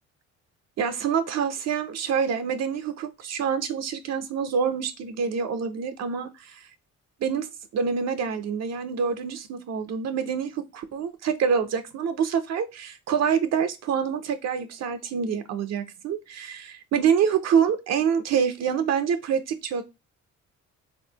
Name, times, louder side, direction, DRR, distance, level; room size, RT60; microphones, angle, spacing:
voice 1, 0.8-6.7 7.2-7.5 7.7-19.8, right 7 dB, 60° right, 0.5 m, -26 dB
3.2 x 2.4 x 2.7 m
cardioid pair, 90°, 30 cm